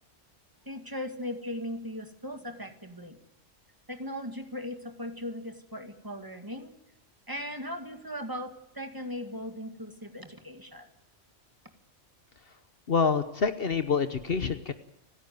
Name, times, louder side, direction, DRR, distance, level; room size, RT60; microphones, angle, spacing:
voice 1, 0.7-3.2 3.9-6.7 7.3-10.9, left 1 dB, 15° right, 6 dB, 1.9 m, -38 dB
voice 2, 12.9-14.7, left 5 dB, 55° left, 10 dB, 1.1 m, -27 dB
29.5 x 10.5 x 9.3 m, 0.89 s
omnidirectional pair, 1.2 m